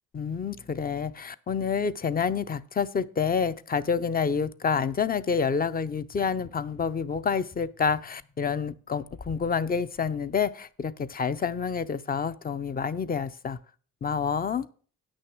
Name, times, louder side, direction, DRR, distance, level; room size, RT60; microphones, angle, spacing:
voice 1, 0.1-13.6 14.0-14.7, left 6 dB, 30° left, 0.6 m, -28 dB
sound 1, 6.1-9.5 10.0-10.1, left 3 dB, 50° left, 2.6 m, -50 dB
9.1 x 6.3 x 6.1 m
cardioid pair, 90°, 30 cm